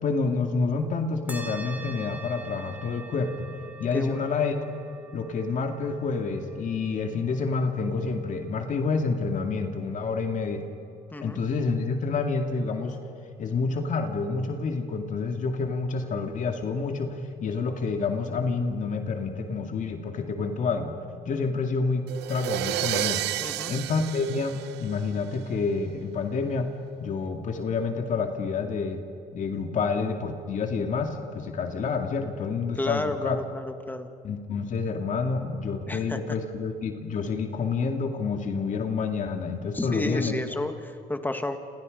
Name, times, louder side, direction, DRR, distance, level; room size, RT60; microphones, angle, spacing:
voice 1, 0.0-3.5 3.8-4.5 5.1-10.6 11.2-13.0 13.4-21.0 21.2-22.0 22.3-23.2 23.7-26.7 27.0-29.0 29.3-33.4 34.2-40.4, left 4 dB, 50° left, 4 dB, 2.3 m, -28 dB
sound 1, 1.3-10.2, right 3 dB, 10° right, 2.9 m, -46 dB
voice 2, 3.9-4.3 11.1-11.4 23.4-23.7 32.8-34.1 35.9-36.2 39.7-41.6, left 2 dB, 10° left, 7 dB, 2.0 m, -31 dB
sound 2, 22.1-25.3, right 14 dB, 80° right, 0.9 m, -31 dB
29.0 x 26.5 x 5.4 m, 2.4 s
cardioid pair, 110°, 17 cm